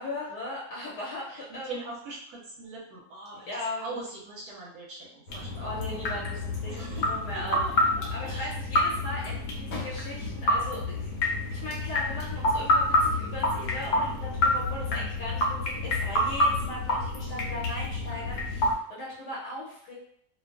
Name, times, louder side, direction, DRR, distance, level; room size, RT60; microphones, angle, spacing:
voice 1, 0.0-1.9 3.5-4.0 5.6-7.6 8.1-11.1 11.5-19.9, left 1 dB, 85° left, -5 dB, 1.3 m, -38 dB
voice 2, 1.3-3.5 3.8-5.7 6.7-8.5 14.1-14.5 16.6-16.7, right 2 dB, 75° right, -4 dB, 1.1 m, -42 dB
sound 1, 5.3-18.7, left 1 dB, 70° left, 1.0 m, -28 dB
2.7 x 2.2 x 2.3 m, 0.72 s
omnidirectional pair, 1.7 m